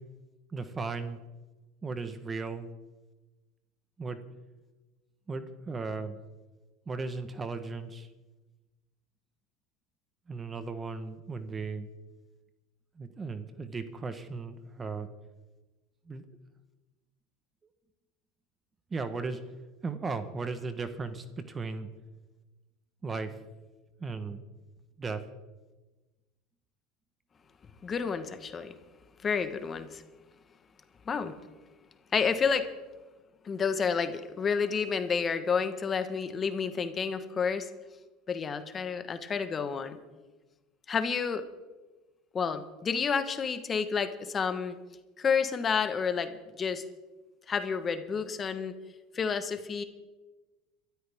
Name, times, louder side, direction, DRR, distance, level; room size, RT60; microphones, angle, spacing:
voice 1, 0.5-1.2 1.8-2.7 4.0-4.2 5.3-6.2 6.9-8.1 10.3-11.9 13.0-15.1 16.1-16.2 18.9-19.4 19.8-21.9 23.0-23.3 24.0-24.4 25.0-25.2, right 4 dB, 25° right, 10 dB, 1.2 m, -36 dB
voice 2, 27.8-28.7 29.2-30.0 31.1-31.3 32.1-32.7 33.4-37.7 38.3-40.0 40.9-41.4 42.3-44.8 45.2-46.8 47.5-48.7 49.1-49.8, left 6 dB, 30° left, 9 dB, 1.3 m, -30 dB
23.0 x 13.0 x 3.6 m, 1.2 s
supercardioid pair, 110°, 0 cm